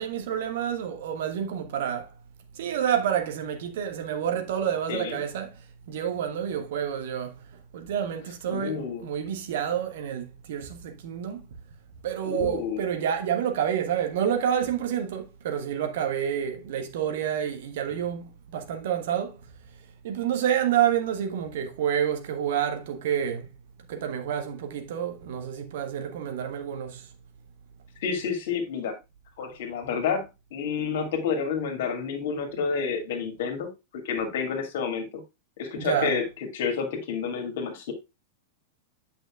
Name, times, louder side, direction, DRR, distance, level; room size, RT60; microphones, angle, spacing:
voice 1, 0.0-2.1 2.5-5.6 5.9-7.5 7.7-11.4 12.0-19.4 20.0-23.5 23.9-27.1 35.8-36.1, right 9 dB, 55° right, 1.3 m, -28 dB
voice 2, 4.9-5.2 8.5-9.0 12.2-12.8 28.0-29.0 29.4-30.2 30.5-33.7 34.0-35.2 35.6-36.2 36.5-37.9, left 6 dB, 55° left, 2.2 m, -29 dB
8.9 x 5.8 x 2.4 m
figure-of-eight pair, 90°, 0 cm